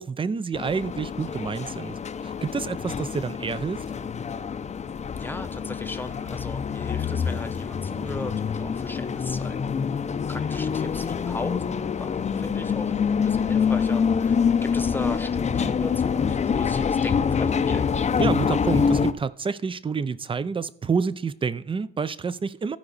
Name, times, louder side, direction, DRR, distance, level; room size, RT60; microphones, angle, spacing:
voice 1, 0.0-3.8 18.2-22.8, right 5 dB, 25° right, 0.5 m, -28 dB
sound 1, 0.5-19.1, left 6 dB, 35° left, 0.6 m, -26 dB
voice 2, 5.2-9.6 10.3-12.9 13.2-14.3 14.6-17.8, left 2 dB, 10° left, 1.0 m, -37 dB
14.5 x 4.8 x 4.0 m
cardioid pair, 90°, 20 cm